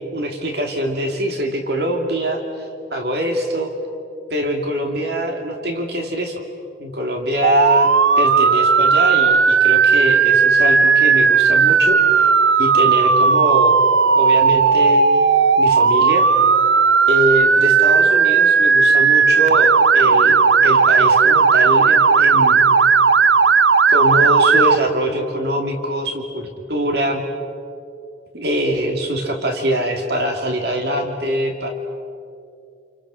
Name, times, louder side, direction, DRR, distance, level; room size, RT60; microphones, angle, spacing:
voice 1, 0.1-2.7 2.9-3.7 4.3-6.4 6.8-7.9 8.2-12.3 12.6-13.8 14.1-15.0 15.6-16.3 17.1-22.6 23.9-27.2 28.3-31.7, equal, 60° right, 2 dB, 2.6 m, -23 dB
Motor vehicle (road) / Siren, 7.4-24.8, right 5 dB, 90° right, 0.8 m, -14 dB
29.5 x 28.5 x 6.4 m, 2.5 s
head